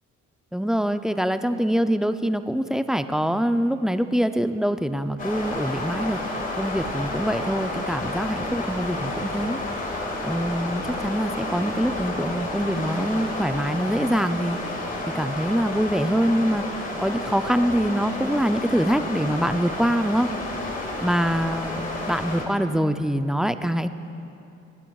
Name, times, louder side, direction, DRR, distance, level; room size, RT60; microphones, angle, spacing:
voice 1, 0.5-9.6 9.9-14.6 15.1-20.3 21.0-23.9, equal, ahead, 9 dB, 0.4 m, -24 dB
sound 1, 5.2-22.5, left 2 dB, 25° left, 2.0 m, -31 dB
28.5 x 11.0 x 2.4 m, 2.8 s
cardioid pair, 90°, 30 cm